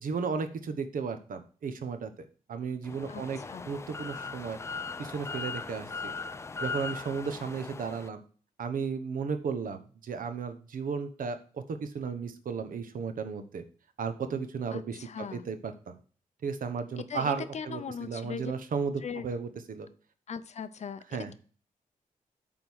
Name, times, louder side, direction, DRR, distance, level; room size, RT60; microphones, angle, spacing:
voice 1, 0.0-2.1 2.5-3.4 3.7-4.6 5.0-6.1 6.6-8.2 8.6-13.6 14.0-15.9 16.4-18.9 19.2-19.9 21.1-21.3, right 5 dB, 70° right, 9 dB, 1.1 m, -34 dB
sound 1, 2.8-8.1, left 4 dB, 20° left, 0.3 m, -39 dB
voice 2, 3.1-3.7 14.7-15.4 17.0-18.5 19.0-19.3 20.3-21.3, left 6 dB, 50° left, 13 dB, 0.6 m, -39 dB
8.9 x 3.7 x 6.3 m, 0.40 s
wide cardioid pair, 175°, 15 cm